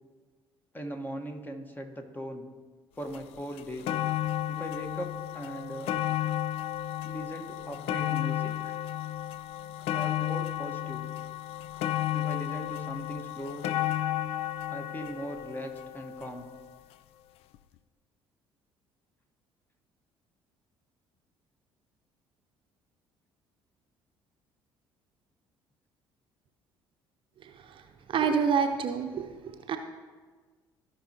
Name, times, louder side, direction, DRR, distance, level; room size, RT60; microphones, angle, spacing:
voice 1, 0.7-2.4 2.9-3.9 4.5-5.9 7.0-8.8 9.9-11.0 12.1-13.6 14.7-16.5, equal, 15° left, 5 dB, 1.3 m, -39 dB
sound 1, 3.1-3.2 3.6-16.7 17.5-17.6, left 12 dB, 55° left, 0.4 m, -33 dB
voice 2, 27.4-27.8 28.1-29.8, right 6 dB, 45° right, 5 dB, 0.8 m, -28 dB
15.5 x 5.4 x 2.9 m, 1.4 s
figure-of-eight pair, 50°, 12 cm